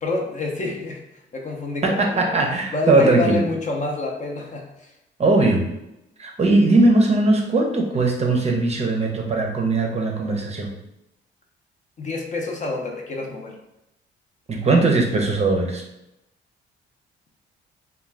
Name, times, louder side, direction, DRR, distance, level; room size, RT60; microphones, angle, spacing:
voice 1, 0.0-2.4 2.7-4.9 12.0-13.6, left 2 dB, 40° left, 1 dB, 0.6 m, -28 dB
voice 2, 1.8-3.4 5.2-5.6 6.2-10.7 14.5-15.8, right 2 dB, 35° right, 1 dB, 0.6 m, -19 dB
2.3 x 2.2 x 3.2 m, 0.88 s
cardioid pair, 90°, 20 cm